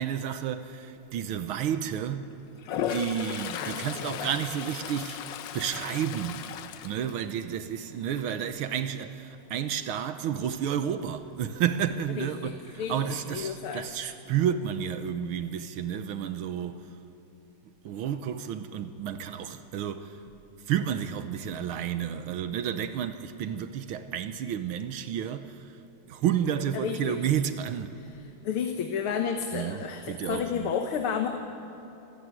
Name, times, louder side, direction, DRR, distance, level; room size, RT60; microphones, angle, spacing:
voice 1, 0.0-2.3 2.9-5.2 5.5-16.9 17.8-20.2 20.7-25.8 26.1-28.0 29.5-30.7, right 9 dB, 80° right, 1.7 m, -31 dB
Toilet flush, 2.6-7.8 8.2-8.6 13.0-13.1 13.4-14.1, left 9 dB, 65° left, 1.4 m, -36 dB
voice 2, 3.5-4.4 12.2-13.8 26.7-27.2 28.4-31.3, left 7 dB, 85° left, 2.1 m, -32 dB
27.0 x 15.0 x 9.5 m
omnidirectional pair, 2.3 m